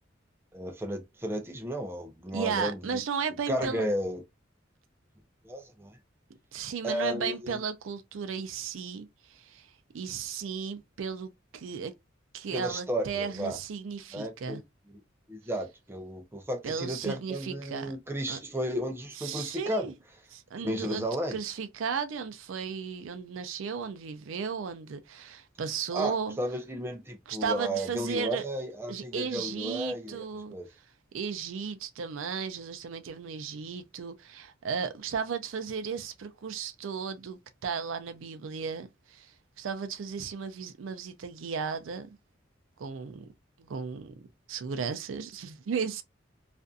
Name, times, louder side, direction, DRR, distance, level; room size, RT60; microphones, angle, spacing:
voice 1, 0.5-3.0 3.5-4.2 5.4-6.0 6.8-7.6 12.5-13.6 14.1-14.6 15.3-19.9 20.6-21.4 25.9-30.7, equal, 10° right, 0.5 m, -33 dB
voice 2, 2.3-3.9 6.5-11.9 12.3-14.6 16.6-18.0 18.3-18.4 19.2-19.9 20.3-21.0 21.3-26.4 27.3-28.5 28.9-30.6 31.1-42.1 42.8-43.3 43.6-44.1 44.5-46.0, right 6 dB, 85° right, 0.4 m, -35 dB
2.5 x 2.5 x 2.3 m
head